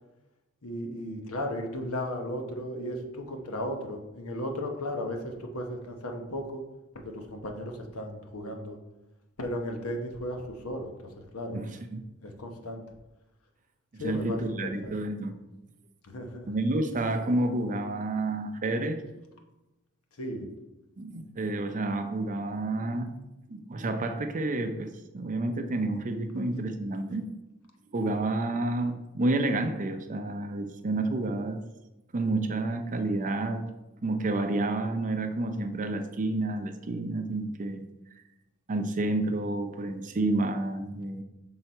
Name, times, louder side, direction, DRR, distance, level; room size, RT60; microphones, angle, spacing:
voice 1, 0.6-6.6 6.9-8.8 9.4-10.9 11.3-11.6 12.2-12.8 14.0-14.9 16.0-16.5 20.2-20.5, left 1 dB, 80° left, 3 dB, 0.9 m, -35 dB
voice 2, 11.5-12.1 14.0-15.4 16.5-19.0 21.0-23.2 23.5-24.9 25.1-27.3 27.9-31.6 32.1-33.7 34.0-37.9 38.7-41.2, right 2 dB, 35° right, 7 dB, 0.5 m, -30 dB
5.8 x 3.9 x 4.3 m, 0.99 s
head